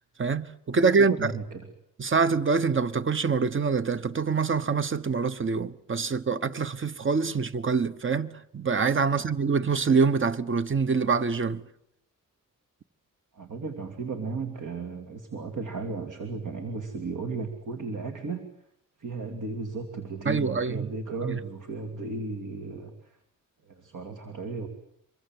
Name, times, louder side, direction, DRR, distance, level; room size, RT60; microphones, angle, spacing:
voice 1, 0.2-1.2 2.0-11.6 20.3-20.9 21.2-21.4, right 5 dB, 35° right, 1.1 m, -25 dB
voice 2, 0.8-1.7 9.1-9.3 13.3-18.4 19.0-23.2 23.6-24.7, right 4 dB, 65° right, 2.9 m, -35 dB
26.0 x 23.0 x 7.8 m
wide cardioid pair, 100°, 34 cm